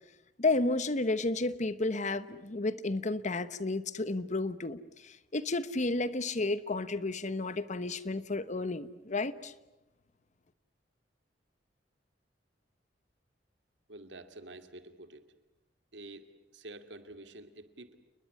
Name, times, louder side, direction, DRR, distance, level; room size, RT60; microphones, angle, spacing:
voice 1, 0.4-9.5, left 2 dB, 45° left, 15 dB, 1.1 m, -32 dB
voice 2, 13.9-15.3 15.9-17.9, right 2 dB, 85° right, 9 dB, 2.4 m, -48 dB
29.5 x 21.0 x 9.6 m, 0.97 s
head